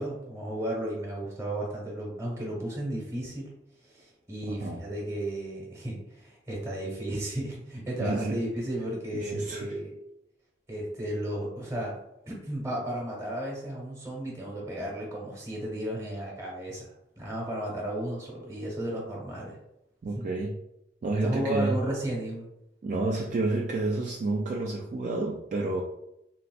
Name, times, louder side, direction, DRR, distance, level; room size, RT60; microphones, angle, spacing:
voice 1, 0.0-3.5 3.8-9.9 10.7-12.0 12.3-19.6 20.1-20.2 21.2-22.5, right 1 dB, 15° right, -3 dB, 1.0 m, -34 dB
voice 2, 4.5-4.8 8.0-8.4 9.1-9.7 20.0-20.6 21.0-21.8 22.8-25.8, right 2 dB, 45° right, -1 dB, 0.3 m, -29 dB
3.7 x 2.5 x 2.3 m, 0.83 s
head